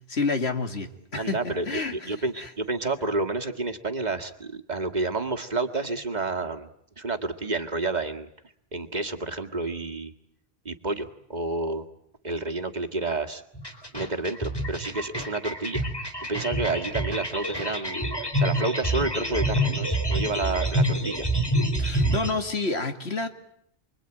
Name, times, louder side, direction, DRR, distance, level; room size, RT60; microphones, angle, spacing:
voice 1, 0.1-2.5 21.8-23.3, left 3 dB, 85° left, 6 dB, 2.5 m, -29 dB
voice 2, 1.1-6.7 7.0-8.3 8.7-10.1 10.7-11.9 12.2-13.4 13.9-15.9 16.3-21.3, right 3 dB, 45° right, 5 dB, 1.9 m, -30 dB
sound 1, 13.5-22.3, right 1 dB, 20° left, 3.7 m, -27 dB
29.0 x 22.5 x 9.0 m, 0.71 s
omnidirectional pair, 1.1 m